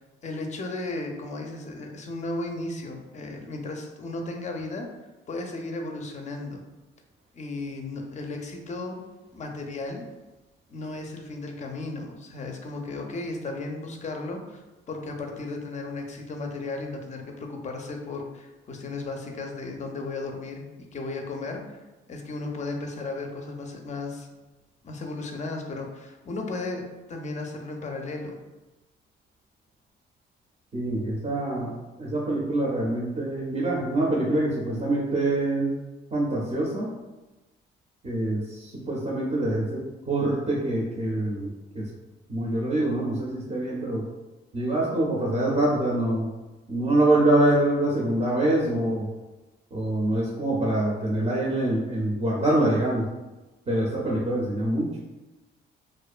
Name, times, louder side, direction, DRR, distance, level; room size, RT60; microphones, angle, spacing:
voice 1, 0.0-4.9 5.3-6.6 7.3-9.0 9.3-10.0 10.7-14.6 14.9-21.8 22.1-24.3 24.8-28.4, left 2 dB, 35° left, 3 dB, 0.4 m, -35 dB
voice 2, 30.7-35.8 36.1-36.9 38.0-41.9 42.3-44.1 44.5-46.3 46.7-49.1 49.7-53.1 53.7-55.0, right 1 dB, 35° right, -4 dB, 0.5 m, -25 dB
2.5 x 2.1 x 2.4 m, 1.1 s
cardioid pair, 90°, 20 cm